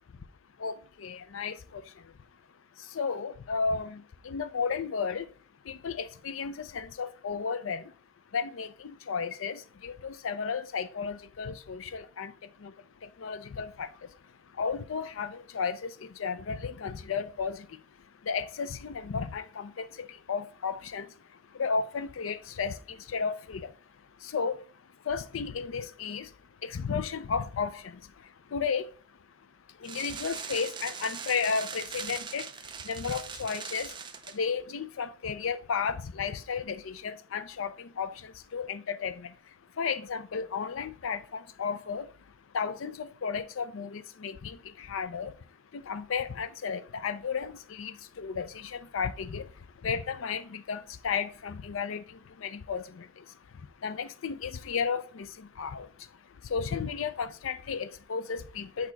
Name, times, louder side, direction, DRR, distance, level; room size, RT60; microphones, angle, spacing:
voice 1, 0.6-2.1 2.8-5.3 5.6-7.9 8.3-14.2 14.5-26.4 26.6-28.9 29.7-34.0 34.2-58.9, left 5 dB, 75° left, 0.5 m, -34 dB
sound 1, 29.8-34.4, right 6 dB, 25° right, 0.5 m, -40 dB
8.3 x 2.9 x 4.4 m
head